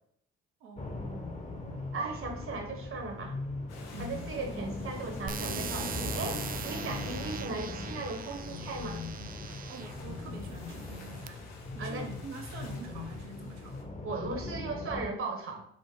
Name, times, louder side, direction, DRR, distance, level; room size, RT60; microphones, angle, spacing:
voice 1, 0.6-1.0 3.9-4.2 9.7-13.9, right 4 dB, 65° right, 2 dB, 1.1 m, -46 dB
sound 1, 0.8-15.1, left 2 dB, 25° left, 1.3 m, -39 dB
voice 2, 1.9-3.4 4.0-9.0 11.8-12.0 14.0-15.7, right 3 dB, 45° right, 3 dB, 1.4 m, -37 dB
sound 2, 3.7-13.8, left 4 dB, 65° left, 0.9 m, -52 dB
sound 3, 5.3-10.0 10.7-11.3, right 8 dB, 30° right, 0.4 m, -41 dB
5.2 x 2.5 x 3.9 m, 0.71 s
hypercardioid pair, 55°, 29 cm